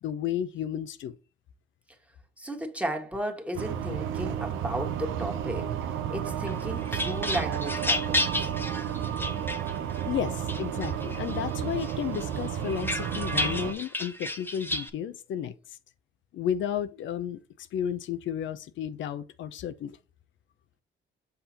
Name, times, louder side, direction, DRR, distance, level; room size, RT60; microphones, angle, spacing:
voice 1, 0.0-1.1 10.0-15.5 16.3-20.0, left 9 dB, 75° left, 0.6 m, -32 dB
voice 2, 2.4-8.5, right 1 dB, 5° right, 1.7 m, -35 dB
sound 1, 3.5-13.7, right 9 dB, 85° right, 0.8 m, -32 dB
sound 2, 6.5-10.0 10.5-11.4 11.8-14.9, left 1 dB, 10° left, 1.0 m, -32 dB
6.7 x 5.7 x 2.9 m
cardioid pair, 90°, 20 cm